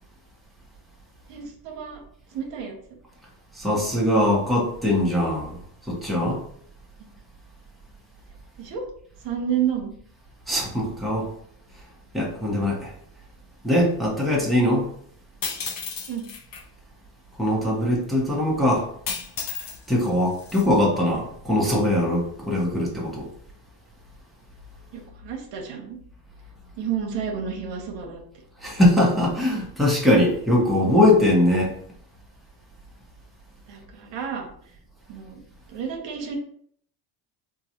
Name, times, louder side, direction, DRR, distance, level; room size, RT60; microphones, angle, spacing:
voice 1, 1.3-2.0 2.3-2.7 8.6-8.8 9.2-9.9 16.1-16.3 24.9-26.0 26.8-28.2 33.7-34.5 35.1-35.4 35.7-36.4, right 8 dB, 70° right, 2 dB, 0.9 m, -30 dB
voice 2, 3.6-5.6 5.9-6.4 10.5-11.3 12.1-12.9 13.6-14.9 17.4-18.9 19.9-23.3 28.6-31.7, left 1 dB, ahead, -4 dB, 1.1 m, -21 dB
sound 1, 15.4-16.6 19.1-19.8 20.1-20.6, left 6 dB, 50° left, 0.7 m, -32 dB
3.8 x 2.5 x 2.9 m, 0.63 s
cardioid pair, 95°, 45 cm